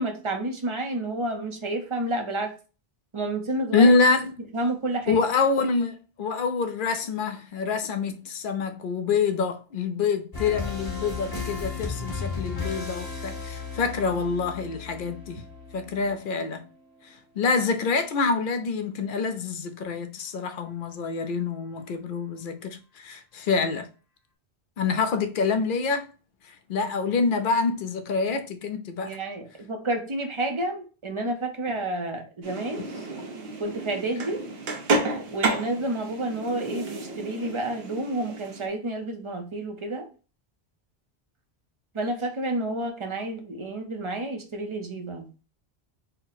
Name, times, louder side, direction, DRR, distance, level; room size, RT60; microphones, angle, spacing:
voice 1, 0.0-2.5 3.1-3.9 4.5-5.2 29.0-32.9 33.6-34.4 35.3-40.1 41.9-45.3, right 1 dB, 35° right, 0.6 m, -30 dB
voice 2, 3.7-4.3 5.1-15.4 15.7-16.7 17.4-23.9 24.8-26.1 26.5-29.2, left 4 dB, 60° left, 0.7 m, -26 dB
sound 1, 10.3-17.0, left 4 dB, 20° left, 0.9 m, -35 dB
sound 2, 32.4-38.7, right 3 dB, 70° right, 1.0 m, -31 dB
4.3 x 2.1 x 4.0 m
omnidirectional pair, 1.1 m